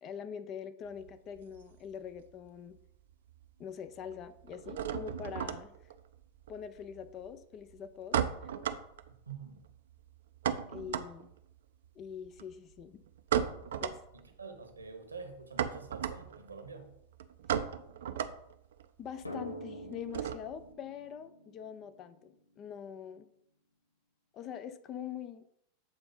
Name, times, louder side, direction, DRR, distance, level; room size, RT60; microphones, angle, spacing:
voice 1, 0.0-2.8 3.6-5.7 6.5-8.5 10.7-11.3 12.0-13.0 13.8-14.0 19.0-23.3 24.3-25.4, left 8 dB, 35° left, 11 dB, 0.6 m, -44 dB
sound 1, 0.9-2.5 2.7-3.4 3.7-20.7, right 9 dB, 60° right, 0.5 m, -37 dB
voice 2, 9.3-9.7 14.1-17.0, right 5 dB, 80° right, 6 dB, 1.2 m, -47 dB
Drum, 19.3-22.6, equal, 80° left, 0.8 m, -46 dB
8.1 x 3.8 x 5.4 m, 0.75 s
figure-of-eight pair, 90°, 0 cm